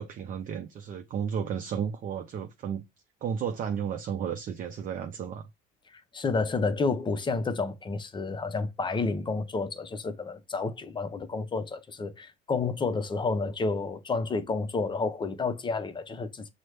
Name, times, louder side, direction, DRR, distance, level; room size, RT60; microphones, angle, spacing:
voice 1, 0.0-2.8 3.2-5.5, right 7 dB, 40° right, 0.5 m, -33 dB
voice 2, 5.9-16.5, left 4 dB, 25° left, 0.6 m, -30 dB
6.1 x 2.1 x 3.2 m
supercardioid pair, 105°, 21 cm